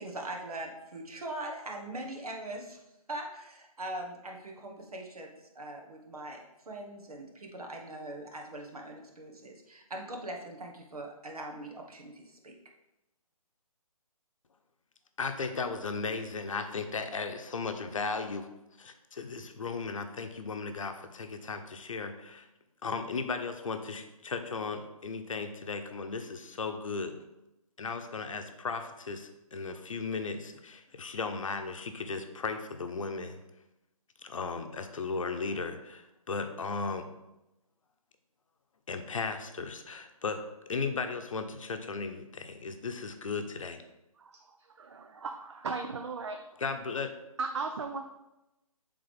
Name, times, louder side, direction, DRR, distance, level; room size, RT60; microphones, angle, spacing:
voice 1, 0.0-2.8 3.1-12.6, right 1 dB, 75° right, 1 dB, 1.5 m, -41 dB
voice 2, 15.2-18.5 18.8-22.5 22.8-27.1 27.8-33.4 34.2-37.1 38.9-40.4 40.7-43.8 46.6-47.1, left 4 dB, 60° left, 6 dB, 0.8 m, -36 dB
voice 3, 44.8-46.4 47.4-48.0, right 4 dB, 50° right, 5 dB, 0.5 m, -36 dB
8.0 x 3.7 x 3.5 m, 0.94 s
hypercardioid pair, 165°, 19 cm